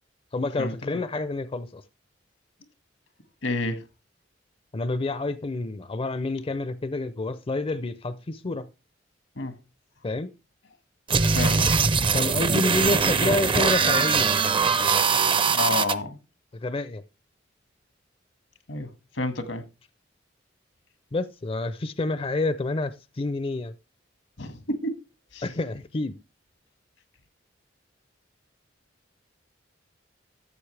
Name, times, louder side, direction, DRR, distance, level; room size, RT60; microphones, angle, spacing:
voice 1, 0.3-1.8 4.7-8.7 10.0-10.3 12.1-14.3 16.5-17.0 21.1-23.7 25.4-26.2, left 2 dB, 30° left, 0.5 m, -28 dB
voice 2, 3.4-3.8 9.4-9.5 11.3-11.7 15.4-16.2 18.7-18.9 19.1-19.6 24.4-25.0 25.3-25.4, left 2 dB, 85° left, 1.8 m, -29 dB
sound 1, 11.1-15.9, right 5 dB, 25° right, 0.5 m, -22 dB
13.5 x 7.8 x 3.3 m
head